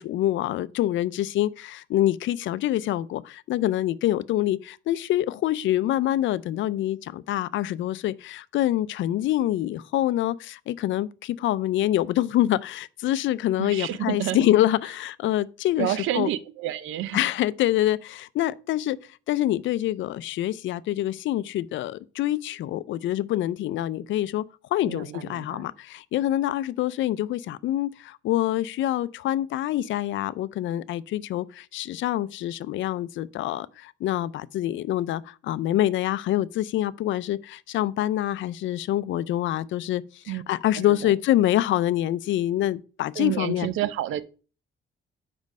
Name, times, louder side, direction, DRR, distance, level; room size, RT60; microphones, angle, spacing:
voice 1, 0.0-1.5 1.9-3.2 3.5-4.6 4.9-7.0 7.3-8.1 8.5-10.3 10.7-11.1 11.4-12.6 13.0-16.3 17.1-18.0 18.4-19.0 19.3-21.9 22.2-24.4 24.7-25.7 26.1-27.9 28.3-31.4 31.7-33.6 34.0-34.3 34.5-35.2 35.5-37.4 37.7-40.0 40.5-43.7, left 13 dB, 75° left, 0.5 m, -25 dB
voice 2, 13.6-14.4 15.8-17.2 24.8-25.7 40.3-40.4 41.0-41.1 43.2-44.2, right 13 dB, 85° right, 0.5 m, -29 dB
5.3 x 5.2 x 6.3 m
cardioid pair, 90°, 20 cm